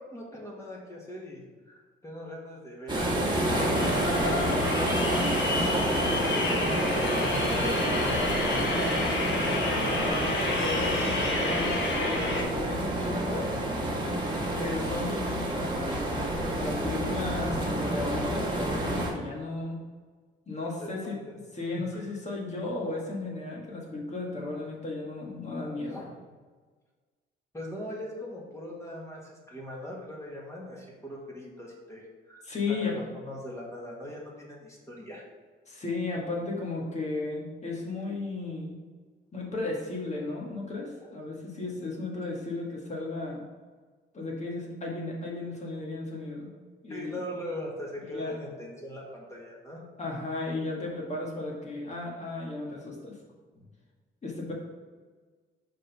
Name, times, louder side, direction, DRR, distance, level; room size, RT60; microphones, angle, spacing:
voice 1, 0.0-3.8 4.4-7.9 20.5-21.4 21.7-21.8 25.8-26.1 27.5-35.2 41.0-41.1 46.9-49.8 53.5-53.7, left 1 dB, 15° left, -3 dB, 1.8 m, -41 dB
sound 1, 2.9-19.1, right 1 dB, 25° right, 1.4 m, -29 dB
sound 2, 3.5-12.4, left 2 dB, 65° left, 1.4 m, -30 dB
voice 2, 9.3-10.3 10.6-13.6 14.6-19.8 20.5-21.2 21.5-26.0 32.4-32.9 35.7-38.8 39.3-43.4 44.1-46.5 46.8-47.2 48.1-48.4 50.0-53.2 54.2-54.5, left 3 dB, 35° left, -2 dB, 1.8 m, -35 dB
5.3 x 3.9 x 5.3 m, 1.4 s
cardioid pair, 90°, 20 cm